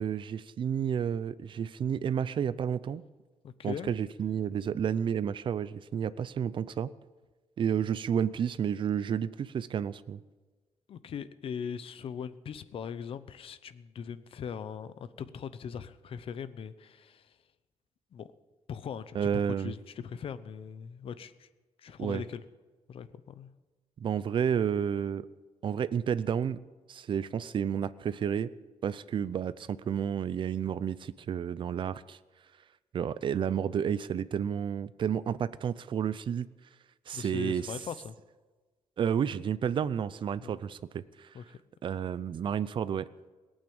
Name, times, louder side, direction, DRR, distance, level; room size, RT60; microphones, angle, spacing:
voice 1, 0.0-3.0 3.6-6.9 7.6-10.2 19.1-19.7 22.0-22.2 24.0-25.3 25.6-26.6 26.9-28.5 28.8-32.2 32.9-36.5 37.1-37.6 39.0-41.3 41.8-43.1, right 8 dB, 45° right, 16 dB, 0.5 m, -31 dB
voice 2, 3.4-3.9 10.9-17.4 18.1-18.3 18.7-19.2 19.4-21.5 21.8-22.4 22.9-23.5 37.1-38.2 40.4-40.5 41.3-41.6, left 7 dB, 55° left, 14 dB, 0.8 m, -40 dB
18.5 x 8.9 x 8.7 m, 1.3 s
cardioid pair, 155°, 12 cm